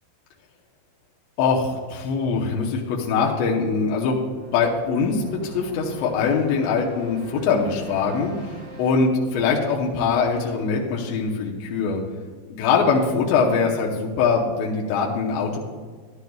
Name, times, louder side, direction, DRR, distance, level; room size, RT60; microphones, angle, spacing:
voice 1, 1.4-4.2 4.5-12.0 12.5-15.6, left 5 dB, 80° left, -2 dB, 3.1 m, -22 dB
sound 1, 3.1-10.9, right 2 dB, 15° right, 1.1 m, -44 dB
13.5 x 11.5 x 2.3 m, 1.5 s
omnidirectional pair, 5.1 m